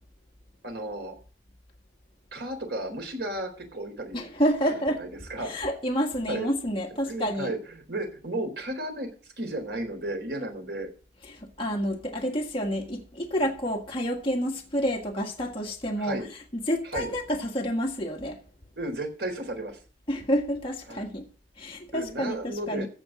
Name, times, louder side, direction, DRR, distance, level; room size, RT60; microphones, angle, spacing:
voice 1, 0.6-1.1 2.3-4.3 4.7-5.6 6.3-6.5 7.1-9.1 9.4-10.9 16.0-16.3 16.8-17.1 18.8-19.8 20.9-21.1 21.9-22.9, right 1 dB, 75° right, 4.0 m, -34 dB
voice 2, 4.1-5.0 5.4-7.5 11.3-16.2 16.5-18.4 20.1-21.3 21.6-22.9, equal, 30° left, 1.7 m, -29 dB
15.5 x 5.4 x 7.5 m
head